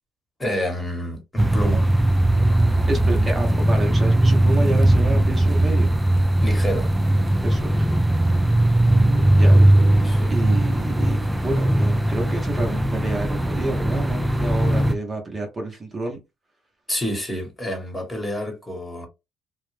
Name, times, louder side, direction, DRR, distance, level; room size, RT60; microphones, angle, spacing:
voice 1, 0.4-1.9 6.4-7.1 9.9-10.3 16.9-19.1, equal, 15° left, 1.2 m, -28 dB
sound 1, 1.4-15.0, right 1 dB, 10° right, 0.4 m, -19 dB
voice 2, 2.9-6.0 7.4-7.9 9.4-16.2, right 2 dB, 30° right, 0.8 m, -29 dB
2.3 x 2.1 x 3.2 m
supercardioid pair, 80°, 0 cm